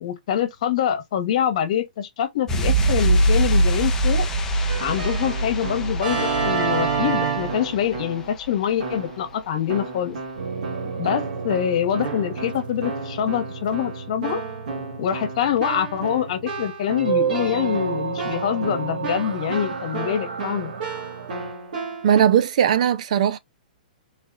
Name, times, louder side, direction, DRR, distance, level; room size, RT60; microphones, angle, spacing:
voice 1, 0.0-4.3 4.8-10.2 11.0-14.4 15.0-20.7, left 10 dB, 45° left, 1.3 m, -25 dB
sound 1, 2.5-9.0 9.2-9.4, right 1 dB, 10° left, 0.6 m, -23 dB
Keyboard (musical), 4.7-8.3 8.8-9.3 9.7-22.2, right 5 dB, 65° right, 2.2 m, -31 dB
sound 2, 10.4-21.5, right 6 dB, 80° right, 1.3 m, -31 dB
voice 2, 22.0-23.4, right 9 dB, 50° right, 0.5 m, -18 dB
4.1 x 2.7 x 2.4 m
hypercardioid pair, 165°, 5 cm